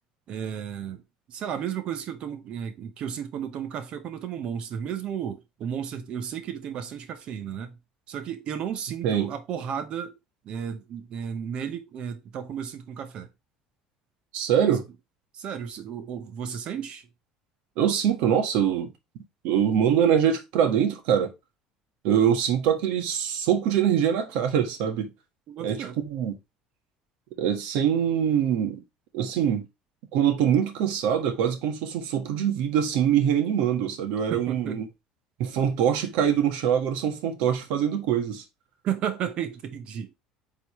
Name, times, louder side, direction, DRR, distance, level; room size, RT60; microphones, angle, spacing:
voice 1, 0.3-1.0 1.3-7.8 8.1-10.1 10.4-13.3 14.6-14.8 15.3-17.1 25.5-26.0 34.3-34.8 38.8-40.1, right 8 dB, 50° right, 0.9 m, -33 dB
voice 2, 14.3-14.8 17.8-18.9 19.4-21.3 22.0-25.1 25.6-26.3 27.4-28.8 29.1-29.6 30.1-34.9 35.4-38.4, right 9 dB, 75° right, 1.5 m, -24 dB
8.3 x 3.8 x 3.1 m
cardioid pair, 125°, 2 cm